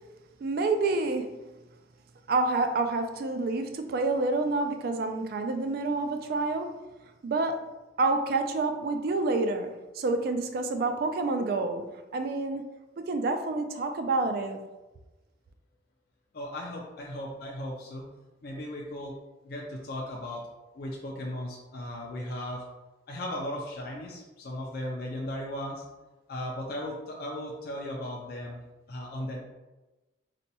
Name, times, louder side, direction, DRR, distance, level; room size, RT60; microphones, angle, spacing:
voice 1, 0.4-1.5 2.3-6.8 7.2-7.7 8.0-12.6 13.0-14.7, right 3 dB, 55° right, 6 dB, 0.3 m, -28 dB
voice 2, 16.3-18.1 18.4-19.1 19.4-20.4 20.7-22.6 23.1-25.8 26.3-28.6 28.9-29.4, left 1 dB, 55° left, -2 dB, 0.4 m, -36 dB
4.1 x 2.2 x 2.7 m, 1.1 s
head